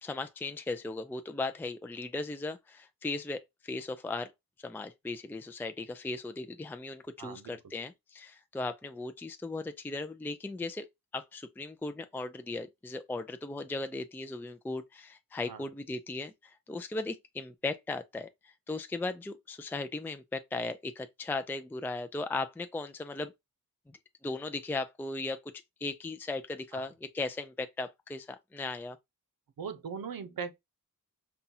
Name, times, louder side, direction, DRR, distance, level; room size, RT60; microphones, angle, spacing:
voice 1, 0.0-4.3 4.6-10.9 11.1-23.3 23.9-25.5 25.8-29.0, left 3 dB, 5° left, 0.4 m, -37 dB
voice 2, 7.2-7.6 15.5-15.6 26.7-26.8 29.6-30.5, right 6 dB, 75° right, 0.8 m, -39 dB
5.4 x 2.4 x 2.8 m
wide cardioid pair, 80°, 35 cm